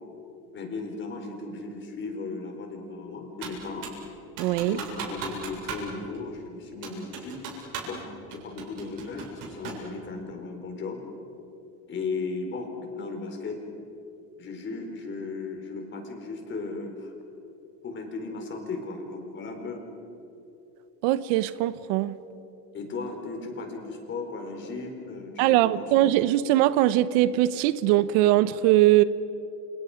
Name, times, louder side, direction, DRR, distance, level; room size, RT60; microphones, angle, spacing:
voice 1, 0.5-3.9 4.6-7.4 7.8-11.0 11.9-13.6 14.4-17.1 17.8-19.8 22.7-26.1, left 3 dB, 30° left, 3 dB, 4.6 m, -36 dB
Computer keyboard, 3.4-4.0 4.4-5.9 6.1-6.2 6.8-8.0 8.3-9.9, right 6 dB, 55° right, 7.8 m, -37 dB
voice 2, 4.4-4.8 21.0-22.1 25.4-29.0, right 15 dB, 75° right, 15 dB, 1.0 m, -21 dB
30.0 x 28.5 x 5.2 m, 2.8 s
cardioid pair, 150°, 38 cm